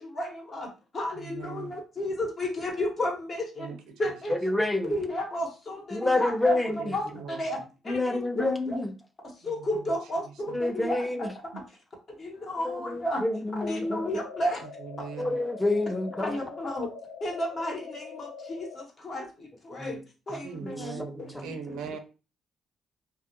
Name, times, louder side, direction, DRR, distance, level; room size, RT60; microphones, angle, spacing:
voice 1, 0.0-4.3 4.8-7.6 7.8-8.8 9.4-11.3 11.5-11.6 12.2-13.2 13.5-14.6 16.2-16.9 17.2-20.0 20.3-21.8, left 1 dB, 45° left, 0.9 m, -33 dB
voice 2, 1.3-1.7 3.6-3.9 6.8-7.4 14.8-15.4 20.4-22.0, right 6 dB, 90° right, 0.4 m, -40 dB
voice 3, 4.3-4.9 5.9-6.8 7.9-8.9 10.5-11.3 12.6-14.0 15.2-16.4 19.8-20.0 20.3-20.9 21.3-21.5, left 2 dB, 10° left, 0.4 m, -28 dB
sound 1, 13.8-18.8, left 5 dB, 85° left, 0.3 m, -43 dB
2.3 x 2.1 x 2.7 m
cardioid pair, 90°, 0 cm